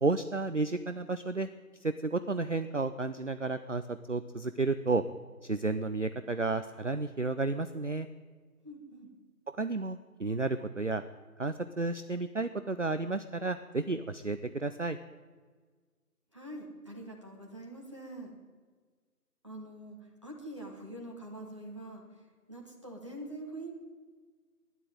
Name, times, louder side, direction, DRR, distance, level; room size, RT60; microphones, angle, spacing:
voice 1, 0.0-1.5 1.8-5.0 5.4-8.1 9.6-11.0 11.4-15.0, right 3 dB, 50° right, 10 dB, 0.5 m, -32 dB
voice 2, 8.6-9.1 16.3-18.3 19.4-23.7, right 1 dB, 20° right, -2 dB, 1.4 m, -45 dB
12.5 x 10.0 x 9.2 m, 1.5 s
figure-of-eight pair, 170°, 47 cm